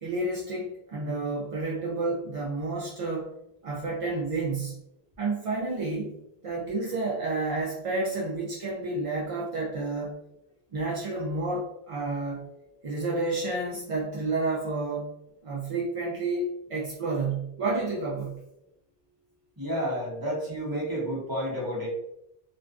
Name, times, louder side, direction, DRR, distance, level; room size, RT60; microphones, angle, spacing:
voice 1, 0.0-3.3 3.6-4.8 5.2-10.2 10.7-12.5 12.8-15.1 15.4-18.4, right 3 dB, 55° right, -5 dB, 0.4 m, -30 dB
voice 2, 19.6-21.9, equal, 25° right, -5 dB, 0.8 m, -30 dB
2.4 x 2.3 x 2.3 m, 0.80 s
omnidirectional pair, 1.0 m